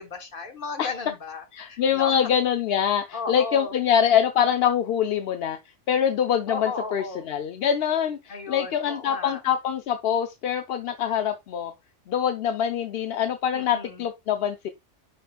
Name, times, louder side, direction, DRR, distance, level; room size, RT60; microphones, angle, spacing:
voice 1, 0.0-2.3 3.1-3.7 6.5-7.3 8.3-9.4 13.5-14.1, left 4 dB, 45° left, 1.3 m, -35 dB
voice 2, 1.5-5.6 5.9-11.7 12.1-14.7, left 8 dB, 60° left, 0.7 m, -24 dB
10.0 x 4.3 x 2.3 m
omnidirectional pair, 1.3 m